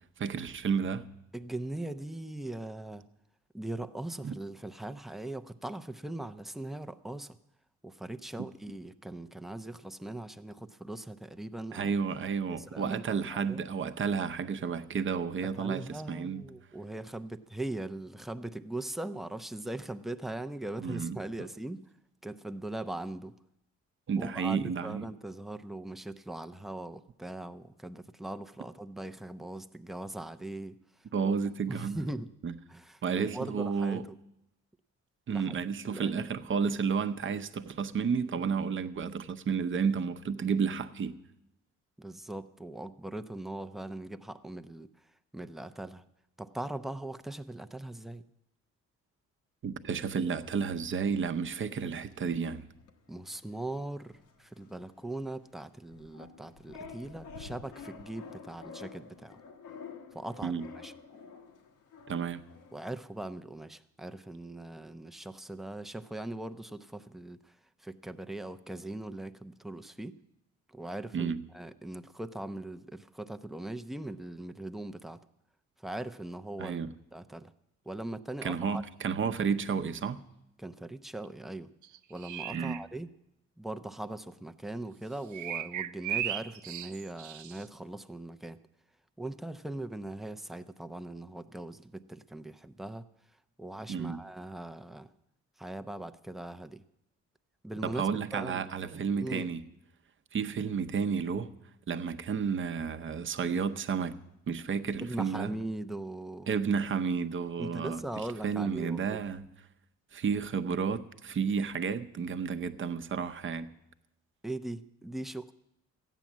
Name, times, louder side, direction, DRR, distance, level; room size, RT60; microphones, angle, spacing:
voice 1, 0.2-1.1 4.2-4.4 11.7-16.5 20.8-21.2 24.1-25.1 31.1-32.0 32.4-32.5 33.0-34.1 35.3-41.2 49.6-52.7 60.4-60.7 62.1-62.4 71.1-71.4 76.6-76.9 78.4-80.2 82.5-82.8 93.9-94.2 97.8-99.6 100.3-101.5 101.9-104.1 104.5-105.5 106.5-108.0 108.4-109.5 110.1-113.7, right 6 dB, 40° right, 0.8 m, -31 dB
voice 2, 1.3-3.1 3.5-7.4 7.8-12.0 12.5-13.6 15.4-21.8 22.2-23.3 24.2-31.3 31.7-32.3 32.7-34.0 35.3-35.6 35.9-36.1 42.0-44.9 45.3-46.0 46.4-48.2 53.1-59.4 60.1-60.9 62.7-70.1 70.7-75.2 75.8-76.8 77.1-77.5 77.9-78.8 80.6-81.7 82.1-83.1 83.6-88.6 89.2-93.1 93.6-95.1 95.6-96.8 97.6-98.0 98.3-98.7 99.2-99.5 105.0-106.5 107.6-109.2 114.4-115.5, right 1 dB, ahead, 0.5 m, -40 dB
sound 1, 50.7-62.9, left 5 dB, 85° left, 1.3 m, -50 dB
sound 2, 81.8-82.8 85.3-87.6, right 10 dB, 75° right, 0.6 m, -36 dB
13.5 x 9.2 x 7.3 m
cardioid pair, 90°, 30 cm